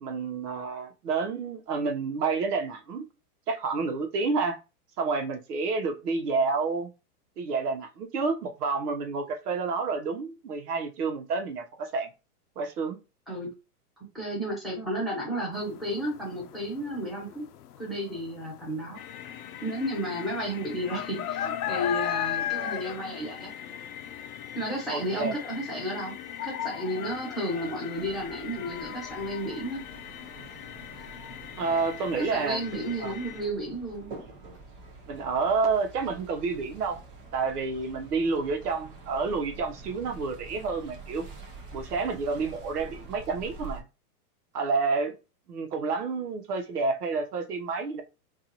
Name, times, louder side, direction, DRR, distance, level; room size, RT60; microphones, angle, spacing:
voice 1, 0.0-3.0 3.5-4.6 5.0-6.9 7.4-12.1 12.6-13.0 24.9-25.3 31.6-32.6 33.0-33.1 35.1-37.0 37.3-41.3 41.7-43.8 44.5-45.2 45.5-48.0, right 4 dB, 80° right, 1.1 m, -29 dB
voice 2, 14.1-17.4 17.8-19.0 19.6-23.5 24.5-26.1 26.4-29.8 32.2-34.1, equal, ahead, 1.1 m, -32 dB
sound 1, 15.5-32.6, left 11 dB, 75° left, 0.6 m, -37 dB
sound 2, 18.9-33.4, left 9 dB, 35° left, 0.5 m, -43 dB
sound 3, 27.9-43.8, right 3 dB, 35° right, 0.9 m, -46 dB
3.8 x 2.6 x 2.9 m
supercardioid pair, 160°, 46 cm